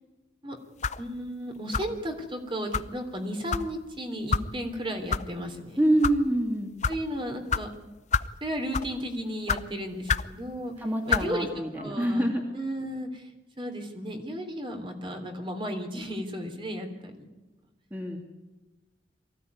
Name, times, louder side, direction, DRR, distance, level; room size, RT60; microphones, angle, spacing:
sound 1, 0.8-1.1 1.7-2.0 2.7-2.9 3.5-3.7 4.3-4.5 5.1-5.2 5.9-6.2 6.8-7.0 7.5-7.6 8.1-8.3 8.7-9.0 9.5-9.6 10.1-10.3 11.1-11.3, left 5 dB, 40° left, 0.7 m, -27 dB
voice 1, 1.0-5.8 6.9-7.7 8.4-10.7 11.1-11.5 11.8-12.3 12.5-13.3 13.6-17.3, equal, 30° right, 5 dB, 3.5 m, -34 dB
voice 2, 5.8-6.7 10.8-12.4 17.9-18.2, right 1 dB, 10° right, 1 dB, 2.7 m, -26 dB
23.5 x 16.0 x 9.6 m, 1.1 s
head